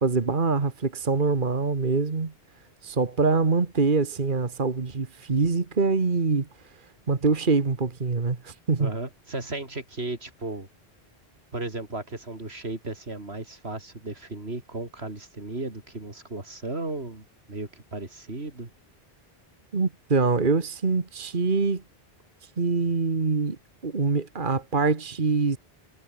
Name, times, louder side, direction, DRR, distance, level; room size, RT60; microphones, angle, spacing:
voice 1, 0.0-2.3 2.8-6.5 7.1-8.9 19.7-21.8 22.6-23.6 23.8-25.6, right 4 dB, 50° right, 1.8 m, -24 dB
voice 2, 8.8-10.7 11.5-18.7, right 2 dB, 85° right, 4.0 m, -35 dB
omnidirectional pair, 1.1 m